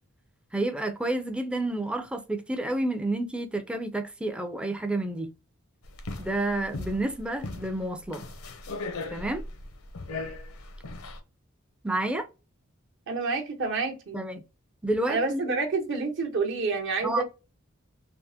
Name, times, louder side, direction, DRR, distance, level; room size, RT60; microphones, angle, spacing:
voice 1, 0.5-5.3 6.2-8.2 9.1-9.4 11.8-12.3 14.1-14.4 14.8-15.4 17.0-17.2, right 2 dB, 5° right, 0.3 m, -29 dB
sound 1, 5.8-11.2, left 2 dB, 80° left, 0.6 m, -38 dB
voice 2, 13.1-14.2 15.1-17.2, right 3 dB, 60° right, 0.9 m, -28 dB
3.4 x 2.0 x 2.7 m
head